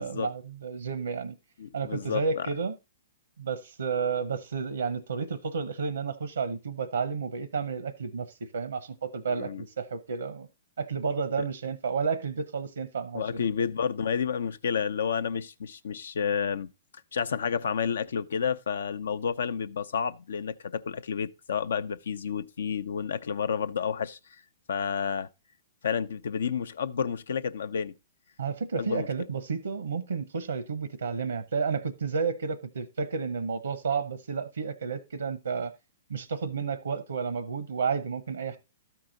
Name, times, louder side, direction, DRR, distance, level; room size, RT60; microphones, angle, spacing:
voice 1, 0.0-1.4 1.7-2.7 3.4-10.5 10.8-13.4 28.4-35.7 36.1-38.6, right 5 dB, 90° right, 0.7 m, -31 dB
voice 2, 1.6-2.5 9.3-9.6 11.4-11.5 13.1-16.7 17.1-24.2 24.7-25.3 25.8-27.9 28.8-29.1, left 7 dB, 75° left, 0.5 m, -30 dB
12.5 x 4.7 x 3.8 m
hypercardioid pair, 130°, 0 cm